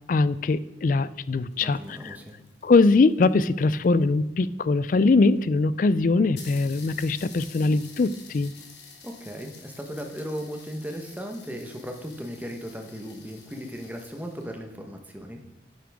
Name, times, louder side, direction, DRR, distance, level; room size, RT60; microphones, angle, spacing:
voice 1, 0.1-2.2 2.6-8.5, left 3 dB, 45° left, 16 dB, 0.3 m, -22 dB
sound 1, 1.4-4.2 5.0-5.1 5.4-5.5 5.8-5.9 6.4-14.5, left 5 dB, 75° left, 1.6 m, -49 dB
voice 2, 1.6-2.4 9.0-15.4, equal, 10° right, 3 dB, 1.0 m, -37 dB
9.6 x 7.5 x 3.5 m, 0.98 s
head